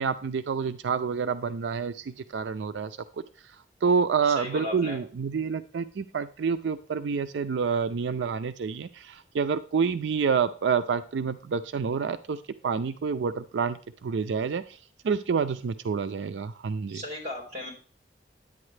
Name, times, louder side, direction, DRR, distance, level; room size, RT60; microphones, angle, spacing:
voice 1, 0.0-3.0 3.8-14.8 15.0-17.0, right 6 dB, 85° right, 11 dB, 0.4 m, -28 dB
voice 2, 4.2-5.0 16.9-17.7, left 1 dB, 40° right, 0 dB, 4.2 m, -36 dB
10.5 x 8.6 x 3.2 m, 0.42 s
head